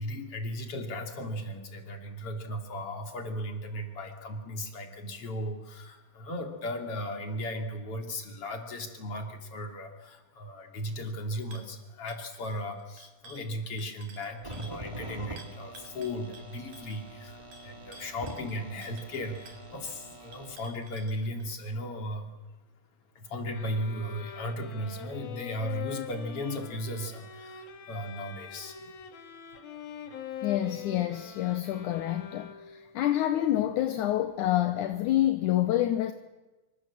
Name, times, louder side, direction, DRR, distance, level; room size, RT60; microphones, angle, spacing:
voice 1, 0.0-22.3 23.2-28.8, equal, 40° left, 3.8 m, -36 dB
sound 1, 11.5-11.7 12.1-14.8 15.4-21.7, right 2 dB, 65° right, 4.1 m, -53 dB
sound 2, 14.4-20.6, right 1 dB, 10° right, 1.7 m, -45 dB
sound 3, 23.5-32.9, left 8 dB, 85° left, 4.0 m, -43 dB
voice 2, 30.4-36.1, left 13 dB, 70° left, 2.3 m, -27 dB
26.5 x 25.0 x 7.5 m
omnidirectional pair, 4.1 m